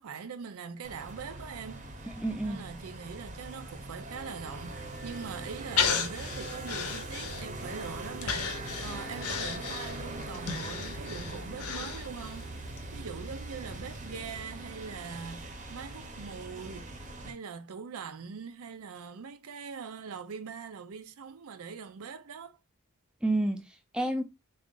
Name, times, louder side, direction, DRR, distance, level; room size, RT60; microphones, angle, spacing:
voice 1, 0.0-2.2 2.4-22.6, right 6 dB, 75° right, 0.5 m, -42 dB
sound 1, 0.8-17.3, right 2 dB, 35° right, 0.7 m, -41 dB
voice 2, 2.2-2.6 23.2-24.2, right 1 dB, 5° right, 0.5 m, -30 dB
Breathing, 5.8-7.7 8.2-12.4 12.8-12.9, left 6 dB, 85° left, 0.8 m, -33 dB
3.7 x 2.4 x 3.7 m
head